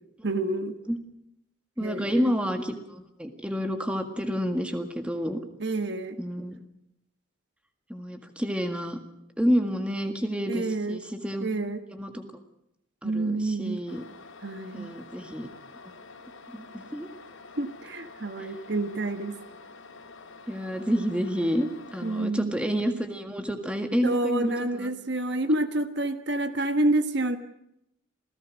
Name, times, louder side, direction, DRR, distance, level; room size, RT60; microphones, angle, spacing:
voice 1, 0.2-0.8 1.8-2.2 5.6-6.2 10.5-11.0 11.4-11.8 13.0-13.8 14.4-14.9 17.6-19.4 22.0-22.6 24.0-27.4, right 2 dB, 55° right, 9 dB, 1.4 m, -28 dB
voice 2, 1.8-5.4 6.2-6.6 7.9-9.0 9.4-11.5 11.9-12.2 13.0-14.0 14.7-15.5 15.8-15.9 16.5-17.1 18.4-18.5 20.5-24.9, equal, 5° right, 6 dB, 1.8 m, -29 dB
sound 1, 13.9-22.3, left 4 dB, 80° left, 3.2 m, -48 dB
27.5 x 17.0 x 6.3 m, 0.81 s
head